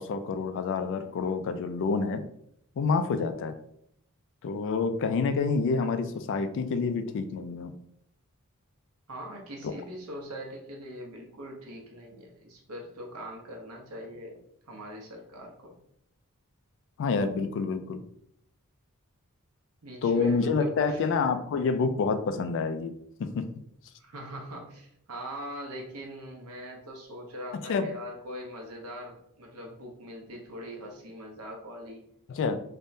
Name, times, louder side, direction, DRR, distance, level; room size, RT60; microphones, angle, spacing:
voice 1, 0.0-2.2 2.8-3.5 4.4-7.7 9.6-9.7 17.0-18.0 20.0-22.9 23.2-23.5 27.5-27.9 32.3-32.6, left 4 dB, 60° left, 9 dB, 0.3 m, -28 dB
voice 2, 9.1-14.4 14.7-15.8 19.8-21.1 24.0-32.0, equal, 80° right, 0 dB, 0.8 m, -42 dB
3.4 x 2.1 x 2.6 m, 0.73 s
head